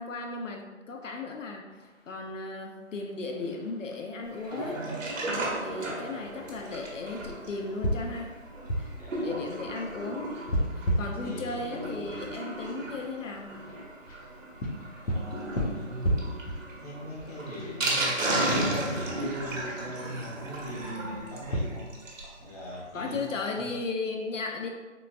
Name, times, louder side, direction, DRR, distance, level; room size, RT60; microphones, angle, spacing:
voice 1, 0.0-1.8 2.1-4.8 5.6-8.3 8.8-8.9 9.2-10.3 10.8-13.7 22.9-24.7, left 3 dB, 70° left, 2 dB, 0.5 m, -35 dB
sound 1, 1.7-21.6, equal, 90° left, 0.9 m, -36 dB
Sink (filling or washing), 4.3-22.4 22.7-22.8 23.0-23.1 23.5-23.6, right 1 dB, 75° right, 1.0 m, -35 dB
voice 2, 5.8-6.3 9.0-9.5 11.2-12.3 15.0-16.2 16.8-21.9 22.4-23.2 23.5-23.7, equal, 30° left, -6 dB, 0.6 m, -40 dB
3.7 x 2.4 x 2.5 m, 1.3 s
hypercardioid pair, 170°, 39 cm